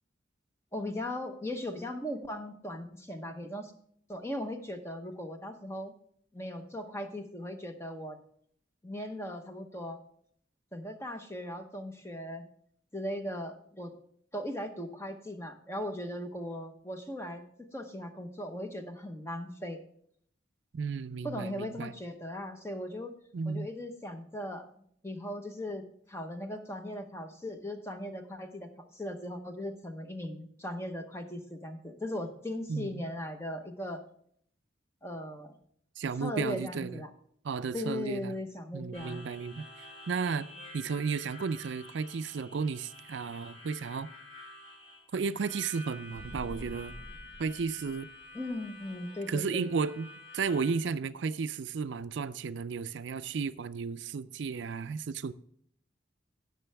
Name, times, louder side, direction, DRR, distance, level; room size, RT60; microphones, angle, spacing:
voice 1, 0.7-3.7 4.1-5.9 6.3-8.2 8.8-10.0 10.7-12.5 12.9-13.9 14.3-17.5 17.7-19.8 21.2-23.1 23.5-24.7 25.0-25.8 26.1-34.0 35.0-35.5 36.2-37.1 37.7-39.2 48.3-49.7, left 1 dB, 15° left, 0.9 m, -38 dB
voice 2, 20.7-21.9 23.3-23.7 32.7-33.0 36.0-37.0 37.4-38.3 38.7-39.7 40.1-40.5 40.7-44.1 45.1-46.9 47.4-48.1 49.3-50.1 50.3-55.3, right 5 dB, 70° right, 0.4 m, -33 dB
Harmonica, 38.9-50.8, left 1 dB, 30° left, 4.4 m, -50 dB
sound 1, 46.1-48.4, equal, 50° left, 0.8 m, -47 dB
16.5 x 6.6 x 3.4 m
head